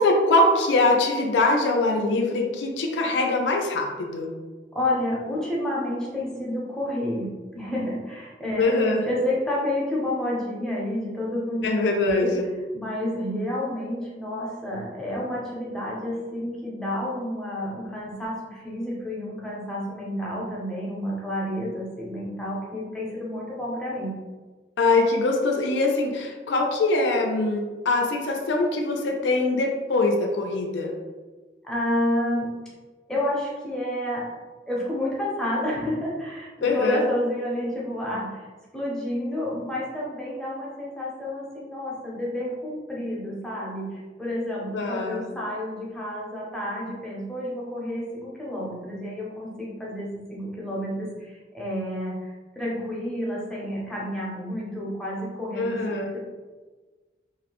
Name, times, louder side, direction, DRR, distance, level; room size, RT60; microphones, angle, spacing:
voice 1, 0.0-4.3 8.6-9.1 11.6-12.5 24.8-30.9 36.6-37.0 44.7-45.3 55.6-56.1, left 2 dB, 85° left, 2 dB, 0.4 m, -23 dB
voice 2, 4.7-7.3 7.5-12.3 12.7-24.1 31.6-32.5 33.1-34.2 34.7-38.5 38.7-52.2 52.6-56.2, left 1 dB, 5° left, -6 dB, 0.5 m, -30 dB
2.5 x 2.0 x 2.9 m, 1.3 s
head